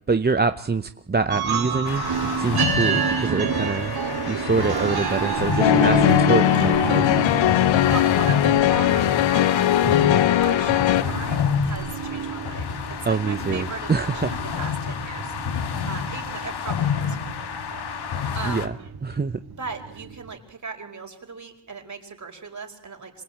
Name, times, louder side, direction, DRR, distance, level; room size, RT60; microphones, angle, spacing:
voice 1, 0.1-4.0 4.2-7.3 9.8-10.2 13.1-14.3 18.5-18.7 19.0-19.4, right 4 dB, 20° right, 9 dB, 0.9 m, -25 dB
sound 1, 1.3-20.3, right 6 dB, 55° right, 2.7 m, -30 dB
sound 2, 1.8-18.7, left 7 dB, 60° left, 1.9 m, -29 dB
sound 3, 5.6-11.0, left 13 dB, 80° left, 0.9 m, -19 dB
voice 2, 6.8-9.8 10.3-12.7 13.0-18.9 19.6-23.2, right 4 dB, 40° right, 4 dB, 5.1 m, -38 dB
26.5 x 18.5 x 8.7 m, 0.75 s
cardioid pair, 75°, 44 cm